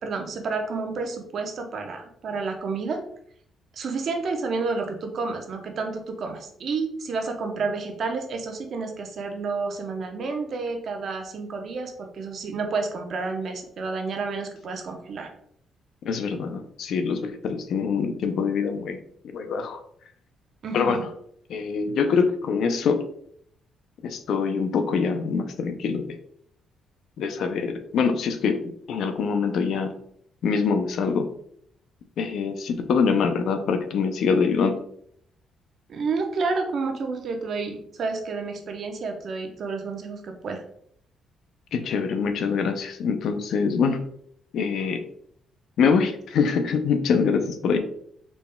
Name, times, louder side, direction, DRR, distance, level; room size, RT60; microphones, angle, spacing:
voice 1, 0.0-3.0 3.7-15.3 20.6-21.1 35.9-40.6, right 4 dB, 60° right, 4 dB, 0.7 m, -30 dB
voice 2, 16.0-19.0 19.2-19.8 20.7-21.0 21.5-23.0 24.0-26.1 27.2-28.6 28.9-29.9 30.4-31.3 32.2-34.7 41.7-44.0 44.5-45.0 45.8-47.8, left 5 dB, 70° left, 7 dB, 0.4 m, -24 dB
4.0 x 3.5 x 2.2 m, 0.68 s
cardioid pair, 90°, 0 cm